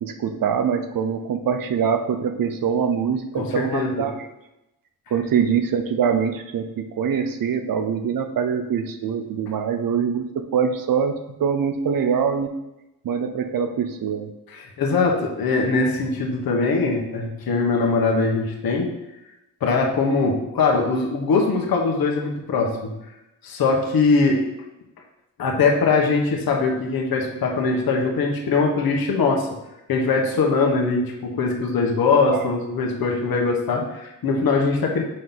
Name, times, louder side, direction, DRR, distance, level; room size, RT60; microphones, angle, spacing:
voice 1, 0.0-4.3 5.1-10.2 10.5-12.6 13.0-14.3 32.3-32.4, right 7 dB, 60° right, 7 dB, 0.7 m, -24 dB
voice 2, 3.4-4.0 14.5-18.9 19.6-23.0 23.4-24.4 25.4-29.5 29.9-35.0, left 4 dB, 70° left, 0 dB, 1.2 m, -21 dB
5.5 x 3.8 x 5.7 m, 0.93 s
cardioid pair, 95°, 37 cm